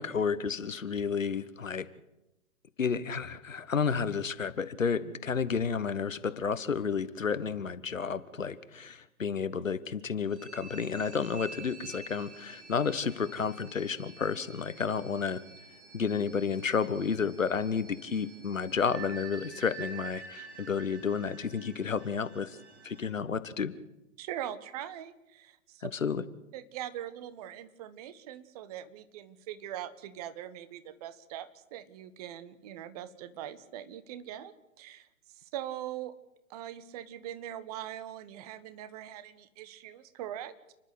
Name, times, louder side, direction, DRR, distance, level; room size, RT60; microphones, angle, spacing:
voice 1, 0.0-1.9 2.8-15.4 15.9-22.6 22.8-23.7 25.8-26.2, left 6 dB, 70° left, 14 dB, 1.5 m, -31 dB
sound 1, 10.3-23.1, right 5 dB, 55° right, 7.5 m, -49 dB
voice 2, 24.2-25.9 26.5-35.1 35.3-36.1 36.5-40.7, right 11 dB, 30° right, 14 dB, 1.3 m, -42 dB
29.5 x 11.5 x 8.2 m, 0.93 s
figure-of-eight pair, 120°, 41 cm